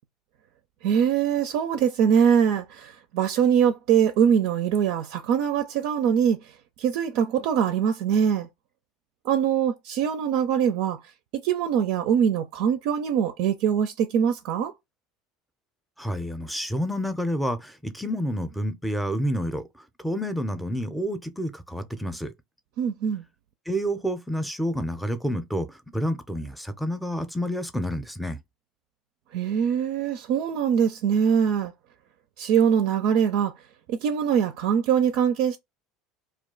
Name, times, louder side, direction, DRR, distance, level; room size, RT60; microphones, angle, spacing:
voice 1, 0.8-6.5 6.8-8.5 9.2-11.0 11.3-14.7 22.8-23.2 29.3-31.7 32.4-33.5 33.9-35.6, right 8 dB, 65° right, 0.4 m, -23 dB
voice 2, 16.0-19.6 20.0-22.3 23.7-28.4, equal, ahead, 0.6 m, -29 dB
2.3 x 2.3 x 3.7 m
hypercardioid pair, 85°, 0 cm